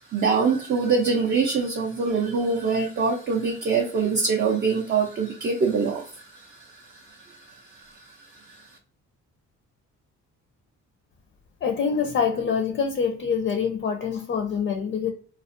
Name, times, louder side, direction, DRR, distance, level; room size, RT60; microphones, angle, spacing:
voice 1, 0.1-8.1 8.5-8.6, right 5 dB, 35° right, 0.4 m, -25 dB
voice 2, 11.6-15.1, left 6 dB, 40° left, 0.4 m, -25 dB
2.4 x 2.1 x 2.4 m
cardioid pair, 90°, 30 cm